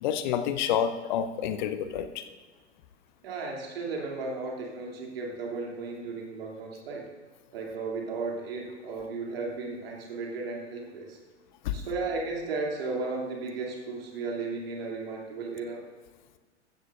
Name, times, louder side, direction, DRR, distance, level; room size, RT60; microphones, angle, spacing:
voice 1, 0.0-2.2 11.6-11.8, left 9 dB, 40° left, 10 dB, 0.7 m, -28 dB
voice 2, 3.2-7.1 7.5-11.2 11.7-15.8, right 3 dB, 55° right, -1 dB, 3.0 m, -35 dB
15.0 x 12.5 x 2.6 m, 1.3 s
figure-of-eight pair, 95°, 35 cm